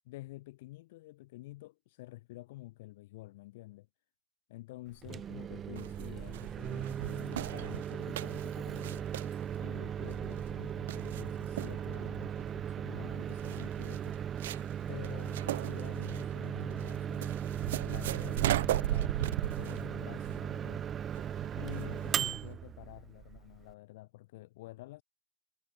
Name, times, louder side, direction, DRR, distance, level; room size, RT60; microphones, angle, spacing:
voice 1, 0.0-3.9 4.5-9.1 9.6-14.2 14.9-17.4 17.8-20.9 21.5-25.0, left 18 dB, 55° left, 3.2 m, -49 dB
Microwave oven, 4.9-23.7, right 9 dB, 20° right, 0.8 m, -37 dB
sound 1, 5.8-22.5, right 14 dB, 65° right, 1.3 m, -38 dB
hypercardioid pair, 135°, 0 cm